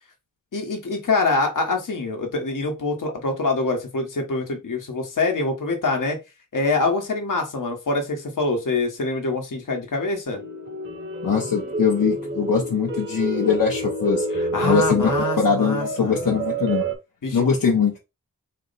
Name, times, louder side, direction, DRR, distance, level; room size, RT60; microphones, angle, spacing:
voice 1, 0.5-6.2 6.5-10.4 14.4-16.2 17.2-17.4, left 3 dB, 70° left, 1.2 m, -25 dB
sound 1, 10.3-16.9, right 2 dB, 35° right, 1.1 m, -28 dB
voice 2, 11.2-14.2 14.6-15.1 15.4-16.8 17.3-18.0, left 6 dB, 85° left, 0.8 m, -22 dB
4.2 x 2.1 x 4.0 m
wide cardioid pair, 90°, 32 cm